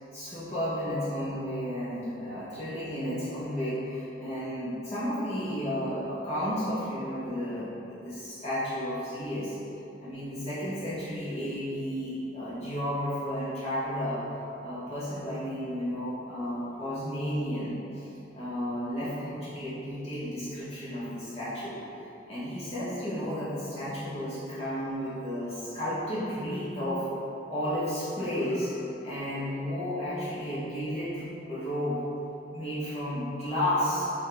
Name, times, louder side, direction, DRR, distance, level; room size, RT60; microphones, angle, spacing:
voice 1, 0.0-9.6 10.0-14.2 14.6-18.1 18.3-21.8 22.3-27.1 27.5-32.0 32.5-34.1, equal, 35° left, -10 dB, 0.8 m, -32 dB
4.2 x 3.3 x 3.2 m, 3.0 s
head